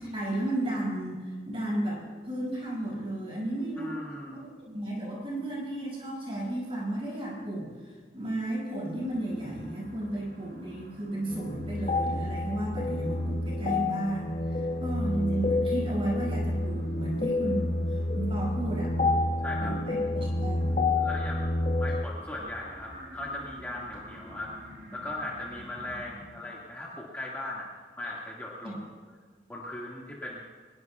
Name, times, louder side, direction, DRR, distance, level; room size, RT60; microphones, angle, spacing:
voice 1, 0.0-4.0 4.3-18.9 19.6-20.8 28.6-28.8, right 1 dB, 30° right, -4 dB, 6.2 m, -33 dB
voice 2, 3.8-4.4 19.4-19.8 21.0-24.5 24.9-27.7 28.0-29.0 29.5-30.4, left 1 dB, 10° left, -6 dB, 2.0 m, -38 dB
sound 1, 8.9-26.3, equal, 60° right, 5.6 m, -51 dB
sound 2, 11.3-22.0, left 2 dB, 40° left, 0.8 m, -29 dB
23.5 x 21.0 x 2.4 m, 1.5 s
head